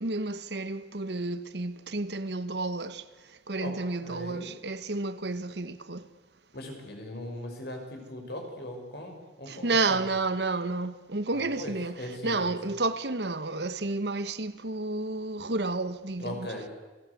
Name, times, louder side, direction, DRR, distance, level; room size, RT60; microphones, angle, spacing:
voice 1, 0.0-6.1 9.5-16.5, right 3 dB, 70° right, 1.3 m, -31 dB
voice 2, 4.0-4.5 6.5-10.0 11.3-12.4 16.2-16.7, left 1 dB, 65° left, 6.3 m, -39 dB
29.0 x 19.5 x 8.5 m
head